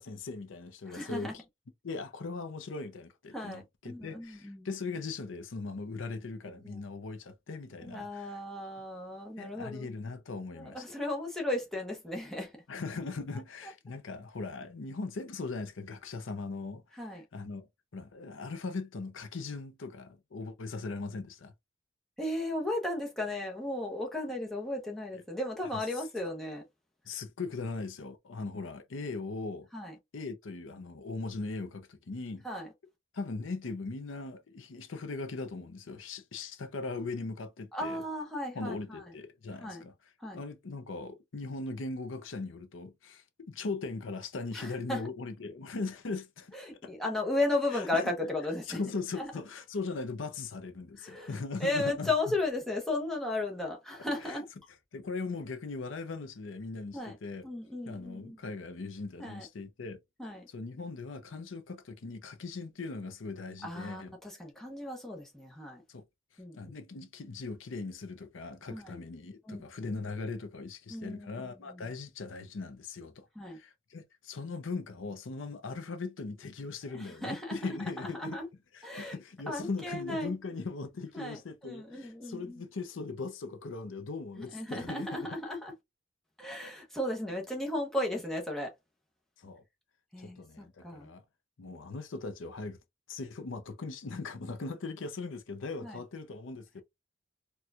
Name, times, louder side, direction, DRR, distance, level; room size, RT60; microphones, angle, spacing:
voice 1, 0.0-1.4 1.8-8.4 9.4-10.8 12.7-17.7 17.9-21.5 25.7-25.8 27.0-29.7 30.1-32.4 33.1-38.0 38.5-46.6 46.8-46.9 47.7-48.1 48.7-52.3 54.2-54.4 54.9-57.4 57.8-60.0 60.5-64.1 65.9-66.0 66.3-78.4 78.7-85.4 89.4-89.6 90.2-91.2 91.6-92.8 93.1-96.8, left 3 dB, 80° left, 0.6 m, -39 dB
voice 2, 0.9-1.3 3.3-4.7 6.6-6.9 7.8-9.9 10.6-12.5 17.0-17.2 22.2-26.6 29.7-29.9 32.4-32.7 37.7-39.0 39.6-39.8 40.2-40.4 44.5-45.0 46.5-48.8 49.2-49.3 51.0-51.3 51.6-54.4 56.9-57.2 57.4-58.4 59.2-59.5 60.2-60.5 63.6-65.8 66.4-66.6 68.7-69.0 69.5-69.6 70.9-71.9 73.4-73.6 76.9-77.6 78.0-78.5 78.8-79.1 79.5-80.3 81.1-82.6 84.4-85.7 86.4-88.7 90.1-91.1 95.8-96.0, left 2 dB, ahead, 0.8 m, -35 dB
4.3 x 2.3 x 2.4 m
head